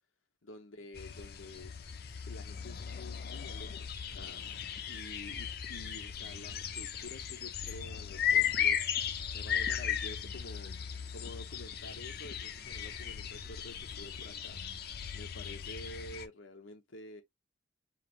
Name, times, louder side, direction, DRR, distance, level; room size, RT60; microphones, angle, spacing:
voice 1, 0.4-1.7 2.0-4.4 4.9-8.8 9.3-10.7 11.1-14.6 15.1-17.2, left 1 dB, 90° left, 1.0 m, -49 dB
sound 1, 0.9-16.3, left 8 dB, 50° left, 0.6 m, -36 dB
5.0 x 2.5 x 3.1 m
head